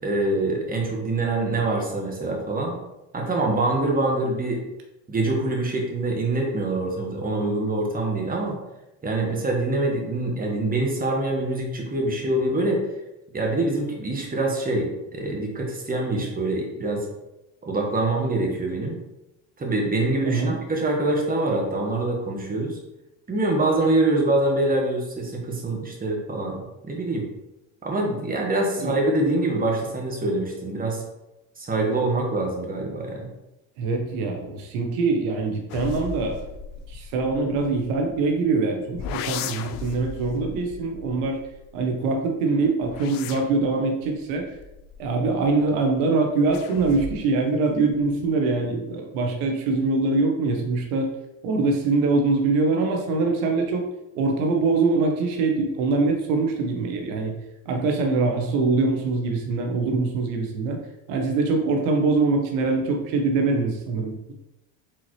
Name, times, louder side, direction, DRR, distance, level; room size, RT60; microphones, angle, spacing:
voice 1, 0.0-2.8 3.1-4.6 5.1-8.5 9.0-12.8 13.3-17.1 17.6-19.0 19.6-22.8 23.3-27.2 27.8-31.0 31.6-33.3, right 2 dB, 20° right, 0 dB, 1.4 m, -25 dB
voice 2, 20.2-20.6 28.8-28.9 33.8-36.4 36.9-41.4 41.7-44.5 45.0-51.1 51.4-53.9 54.1-57.4 57.7-60.8 61.1-64.3, right 3 dB, 85° right, 2 dB, 0.9 m, -23 dB
sound 1, 35.7-38.4 38.9-42.0 42.6-45.7 46.5-47.4 47.7-48.3, left 6 dB, 55° left, 0.5 m, -37 dB
4.5 x 3.7 x 3.1 m, 0.94 s
supercardioid pair, 90°, 40 cm